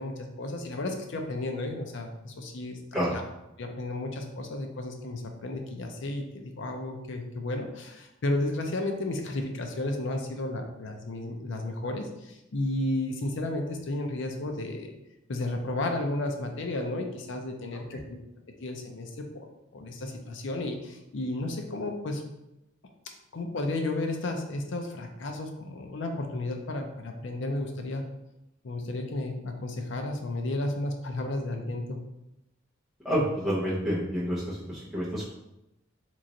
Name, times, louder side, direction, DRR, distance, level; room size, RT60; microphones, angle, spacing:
voice 1, 0.0-2.8 3.1-3.2 3.6-14.9 15.3-18.2 18.6-19.5 19.7-22.2 23.3-28.0 28.6-32.0, left 2 dB, 65° left, 3 dB, 0.5 m, -33 dB
voice 2, 33.0-35.3, equal, ahead, -10 dB, 0.7 m, -29 dB
3.0 x 2.5 x 3.9 m, 0.90 s
head